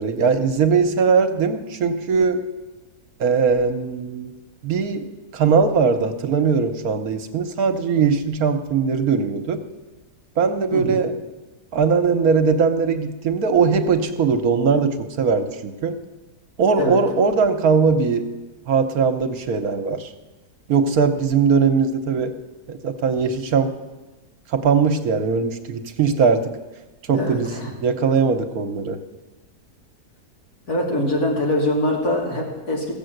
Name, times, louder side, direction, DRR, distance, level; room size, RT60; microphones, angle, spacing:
voice 1, 0.0-2.4 3.2-4.3 4.6-9.7 10.4-11.1 11.7-16.0 16.6-18.3 18.7-20.1 20.7-22.3 22.7-23.7 24.5-26.5 27.1-27.6 27.8-29.0, right 5 dB, 70° right, 8 dB, 1.4 m, -20 dB
voice 2, 27.1-27.7 30.7-32.9, left 1 dB, 75° left, -2 dB, 3.2 m, -23 dB
15.5 x 7.1 x 7.8 m, 1.2 s
omnidirectional pair, 1.6 m